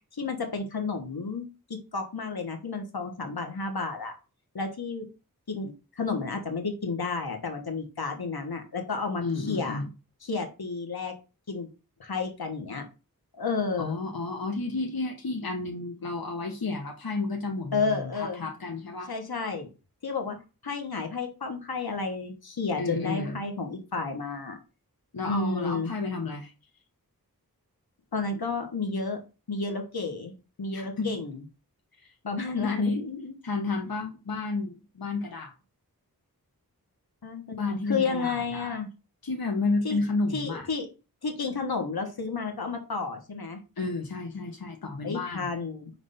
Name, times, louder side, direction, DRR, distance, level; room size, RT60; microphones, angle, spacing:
voice 1, 0.2-4.2 4.5-5.1 5.5-9.8 10.2-11.1 11.5-11.7 12.0-12.8 13.4-14.0 17.7-18.4 19.1-19.7 20.0-20.4 20.6-24.6 25.2-25.9 28.1-29.2 29.5-30.3 30.6-31.4 32.2-33.3 37.2-38.9 39.8-40.0 40.3-40.9 41.2-43.6 45.0-45.9, left 4 dB, 90° left, 4 dB, 1.4 m, -31 dB
voice 2, 9.2-9.9 13.8-19.1 22.8-23.4 25.1-26.5 30.7-31.1 32.0-32.1 32.6-33.0 33.4-35.5 37.6-38.8 39.2-40.7 43.8-45.5, left 3 dB, 70° left, 2 dB, 1.1 m, -31 dB
5.9 x 3.3 x 5.6 m, 0.31 s
wide cardioid pair, 50°, 36 cm